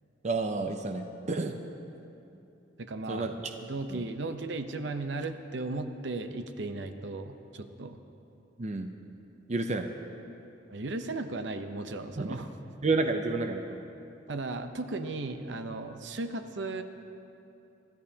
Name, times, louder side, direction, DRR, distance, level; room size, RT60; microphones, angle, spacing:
voice 1, 0.2-1.6 3.1-3.3 3.9-4.1 8.6-8.9 9.5-9.9 12.2-12.4 12.8-13.8, right 3 dB, 40° right, 5 dB, 0.6 m, -30 dB
voice 2, 2.8-8.0 10.7-12.5 14.3-16.8, right 2 dB, 70° right, 8 dB, 0.8 m, -36 dB
25.0 x 13.0 x 2.8 m, 2.8 s
head